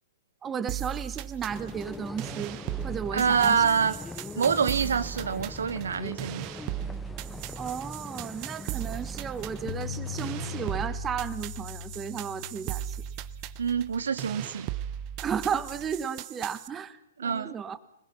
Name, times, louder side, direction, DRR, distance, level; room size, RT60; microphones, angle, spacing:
voice 1, 0.4-3.7 7.6-13.0 15.2-17.8, right 7 dB, 20° right, 1.5 m, -34 dB
sound 1, 0.7-16.7, right 12 dB, 35° right, 0.9 m, -38 dB
sound 2, 1.5-10.9, left 3 dB, 10° left, 0.8 m, -42 dB
voice 2, 3.1-4.0 4.4-6.5 13.6-14.7 17.2-17.6, right 6 dB, 70° right, 0.8 m, -26 dB
Bass guitar, 9.7-15.9, left 9 dB, 75° left, 1.5 m, -42 dB
26.0 x 20.5 x 5.9 m
figure-of-eight pair, 120°, 0 cm